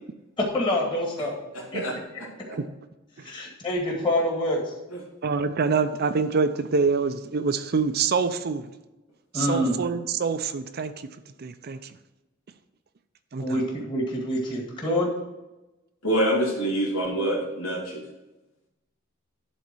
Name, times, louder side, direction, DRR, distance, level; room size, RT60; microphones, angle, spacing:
voice 1, 0.4-1.3 1.7-1.8 3.2-4.7 9.3-9.7 13.4-15.1, left 1 dB, 25° left, -2 dB, 2.2 m, -26 dB
voice 2, 1.5-1.9 2.5-2.6 16.0-18.0, right 1 dB, 80° left, -3 dB, 3.0 m, -26 dB
voice 3, 5.2-8.7 9.3-10.9 11.4-11.8 13.3-13.4, right 5 dB, 50° right, 10 dB, 0.5 m, -25 dB
10.5 x 4.1 x 6.2 m, 1.0 s
head